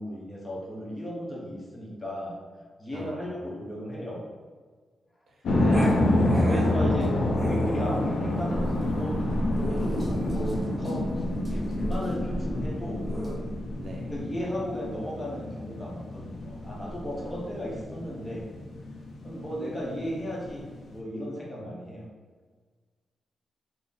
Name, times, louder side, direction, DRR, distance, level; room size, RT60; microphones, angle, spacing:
voice 1, 0.0-2.4 2.8-4.2 6.4-9.2 9.8-11.1 11.5-13.1 14.1-18.5 19.2-22.1, equal, 20° left, -4 dB, 0.8 m, -35 dB
voice 2, 2.9-3.4 5.5-6.0 6.5-7.0 13.7-14.1, right 1 dB, 60° right, -2 dB, 0.6 m, -38 dB
sound 1, 5.4-21.0, left 1 dB, 75° left, 0.5 m, -28 dB
Growling, 5.7-13.4, equal, 15° right, 0.8 m, -36 dB
3.7 x 2.0 x 3.9 m, 1.5 s
wide cardioid pair, 155°, 0 cm